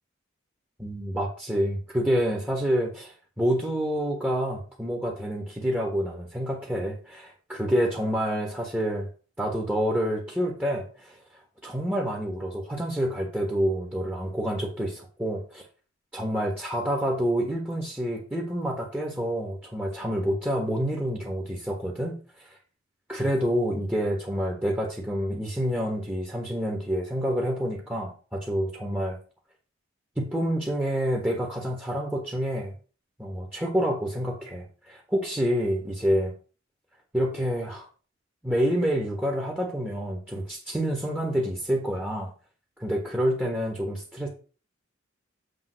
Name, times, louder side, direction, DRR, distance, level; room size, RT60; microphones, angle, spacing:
voice 1, 0.8-9.1 9.4-11.2 11.6-15.6 16.1-22.1 22.4-22.5 23.1-29.2 30.2-32.7 33.2-36.3 37.1-37.8 38.4-42.3 42.8-44.3, equal, 10° right, 0 dB, 1.4 m, -28 dB
8.1 x 3.5 x 6.6 m, 0.38 s
head